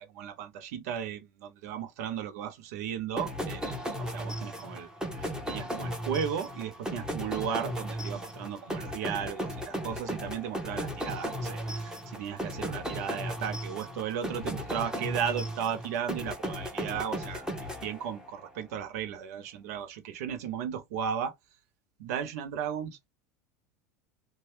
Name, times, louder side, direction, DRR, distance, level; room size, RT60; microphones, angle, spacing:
voice 1, 0.0-4.9 5.2-17.5 17.8-21.4 22.0-23.1, right 8 dB, 75° right, 0.7 m, -35 dB
sound 1, 3.2-18.5, equal, 10° right, 0.9 m, -36 dB
2.7 x 2.3 x 3.1 m
hypercardioid pair, 95°, 9 cm